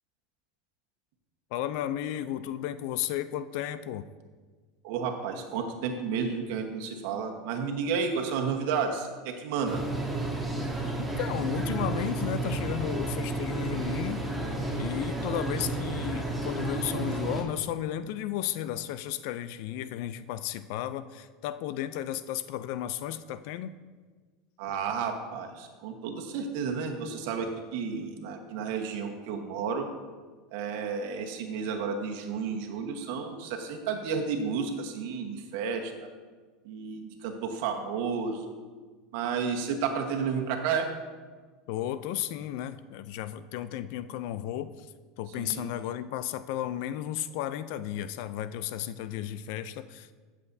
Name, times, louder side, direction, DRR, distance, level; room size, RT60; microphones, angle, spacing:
voice 1, 1.5-4.0 11.0-14.2 14.7-23.7 41.7-50.1, left 11 dB, 65° left, 14 dB, 0.4 m, -34 dB
voice 2, 4.8-9.8 24.6-29.9 30.5-35.9 36.6-38.4 39.1-40.9 45.4-45.7, right 6 dB, 70° right, 3 dB, 1.2 m, -32 dB
sound 1, 9.6-17.4, right 2 dB, 5° right, 1.6 m, -31 dB
14.0 x 7.4 x 2.7 m, 1.4 s
supercardioid pair, 110°, 0 cm